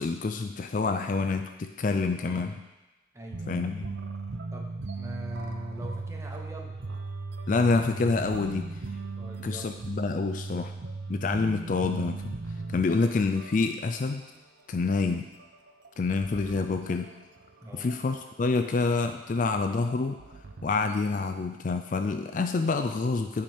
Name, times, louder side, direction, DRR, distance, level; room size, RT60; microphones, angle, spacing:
voice 1, 0.0-2.6 3.5-3.9 7.5-8.7 9.4-10.7 11.1-12.3 12.7-14.2 14.7-15.3 16.0-17.1 17.7-20.2 20.6-23.4, left 4 dB, 40° left, 7 dB, 0.3 m, -27 dB
voice 2, 2.2-2.5 3.1-3.7 4.5-6.8 9.1-9.7 17.6-18.0, equal, 15° right, 1 dB, 0.8 m, -41 dB
sound 1, 3.3-13.6 13.8-14.1 14.3-14.4 14.9-17.5 17.9-18.4 18.8-18.9 19.3-21.3, right 3 dB, 65° right, 0.6 m, -38 dB
9.0 x 5.1 x 4.3 m, 1.1 s
head